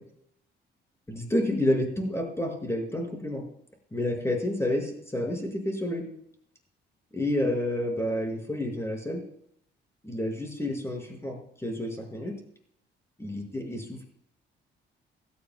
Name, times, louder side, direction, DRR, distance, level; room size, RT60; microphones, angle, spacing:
voice 1, 1.1-3.4 3.9-6.0 7.1-9.2 10.0-12.4 13.2-14.0, left 1 dB, 15° left, 2 dB, 5.2 m, -29 dB
17.0 x 13.0 x 2.2 m, 0.69 s
cardioid pair, 90°, 20 cm